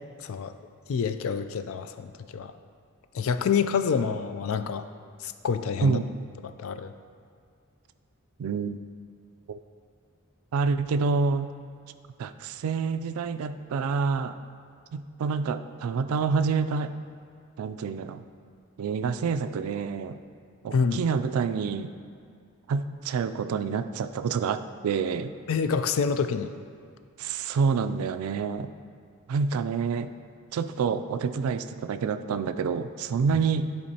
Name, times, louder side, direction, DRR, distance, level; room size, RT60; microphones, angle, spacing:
voice 1, 0.2-0.5 0.9-2.5 3.1-4.8 5.2-6.0 6.6-6.9 20.7-21.0 25.5-26.5, left 6 dB, 70° left, 10 dB, 0.3 m, -27 dB
voice 2, 5.8-6.2 8.4-8.8 9.5-9.6 10.5-11.5 12.2-14.3 14.9-17.0 17.6-18.2 18.8-20.2 20.6-21.9 22.7-25.3 27.2-28.7 29.3-30.1 30.5-33.7, right 5 dB, 85° right, 11 dB, 0.3 m, -27 dB
10.5 x 4.3 x 2.8 m, 2.3 s
head